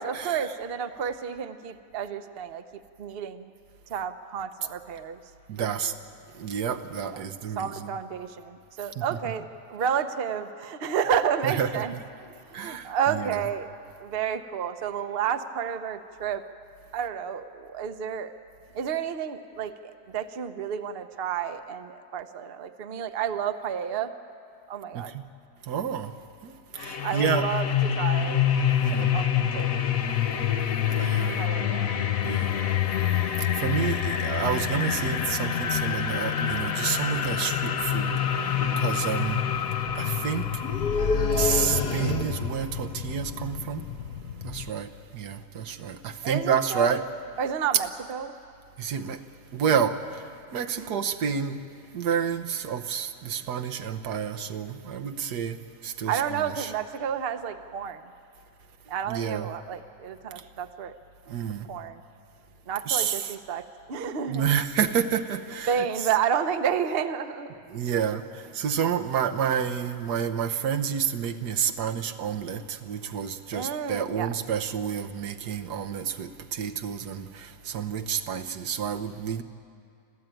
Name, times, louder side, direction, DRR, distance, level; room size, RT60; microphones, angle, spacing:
voice 1, 0.0-2.6 3.0-3.5 3.9-5.2 5.6-5.9 7.0-7.3 7.6-11.9 12.6-13.7 14.0-16.4 16.9-18.4 18.7-24.1 24.7-25.1 27.0-27.7 28.0-28.4 28.9-29.7 31.3-31.9 46.2-47.0 47.4-48.4 50.7-50.9 56.0-58.0 58.9-60.9 61.7-62.0 62.7-64.5 65.7-67.5 73.5-74.3, right 8 dB, 45° right, 9 dB, 0.9 m, -30 dB
voice 2, 5.5-5.9 6.4-7.9 9.0-9.1 11.4-11.9 12.5-13.4 24.9-25.2 25.6-26.1 26.4-27.4 28.8-29.1 30.9-31.5 32.2-32.5 33.4-39.5 39.9-40.5 41.3-43.9 44.4-47.0 48.8-49.2 49.5-50.2 50.5-51.6 51.9-56.7 59.1-59.5 61.3-61.7 62.9-63.3 64.3-65.8 67.7-79.4, right 8 dB, 80° right, 6 dB, 1.5 m, -29 dB
sound 1, 26.8-44.7, left 9 dB, 65° left, 1.1 m, -27 dB
sound 2, 38.1-38.3 38.6-38.9 40.6-42.6, left 4 dB, 90° left, 2.0 m, -28 dB
27.5 x 14.5 x 9.1 m, 2.4 s
omnidirectional pair, 1.7 m